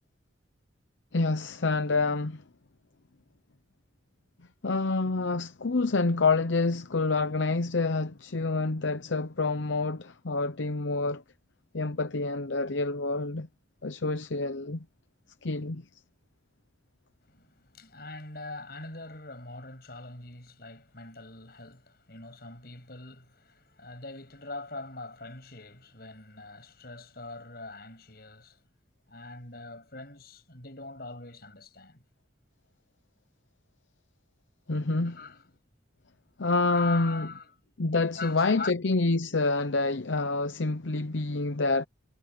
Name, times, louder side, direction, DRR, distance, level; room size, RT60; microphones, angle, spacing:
voice 1, 1.1-2.4 4.6-11.2 11.7-13.5 13.8-14.8 15.4-15.8 34.7-35.2 36.4-37.3 37.8-41.8, left 3 dB, 80° left, 0.8 m, -27 dB
voice 2, 17.2-28.6 29.1-32.0 35.0-35.4 36.7-37.5 38.2-38.7, left 3 dB, 55° left, 7.5 m, -42 dB
head